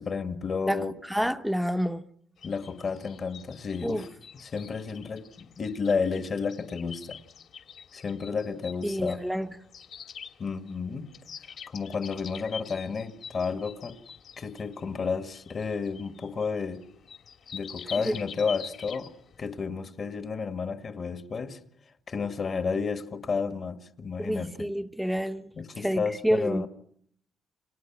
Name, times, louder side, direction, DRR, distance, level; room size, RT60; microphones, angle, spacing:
voice 1, 0.0-0.9 2.4-4.1 4.4-7.2 7.9-9.2 10.4-11.1 11.7-14.0 14.4-16.8 17.5-19.1 19.4-21.6 22.1-24.7 25.6-26.7, left 5 dB, 45° left, 1.9 m, -31 dB
voice 2, 0.7-2.0 3.8-4.1 8.8-9.6 18.0-18.2 24.2-25.5 25.8-26.7, equal, ahead, 1.1 m, -29 dB
sound 1, 2.4-19.5, left 7 dB, 65° left, 2.9 m, -46 dB
29.5 x 26.0 x 6.1 m
cardioid pair, 90°, 0 cm